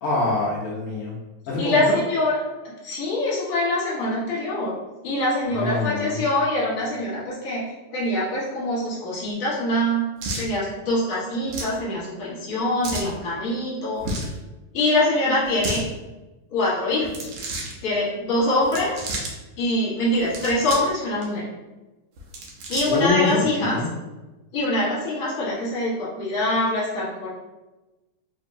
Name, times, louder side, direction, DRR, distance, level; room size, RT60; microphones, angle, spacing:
voice 1, 0.0-1.1 1.5-1.7 5.5-6.2 22.8-23.8, left 3 dB, 80° left, -5 dB, 1.3 m, -24 dB
voice 2, 1.6-2.4 2.6-4.8 5.0-7.6 7.9-10.1 10.4-14.0 14.7-15.8 16.5-17.3 17.8-19.1 19.6-21.5 22.7-23.8 24.5-27.3, left 1 dB, 50° left, -7 dB, 1.8 m, -24 dB
sound 1, 10.2-10.5 11.5-11.8 12.8-13.1 14.0-14.4 15.4-15.8 17.0-17.7 18.6-19.3 20.2-20.9 21.2-21.3 22.2-23.1, right 2 dB, 75° right, 1.4 m, -31 dB
4.4 x 2.8 x 2.6 m, 1.1 s
omnidirectional pair, 3.4 m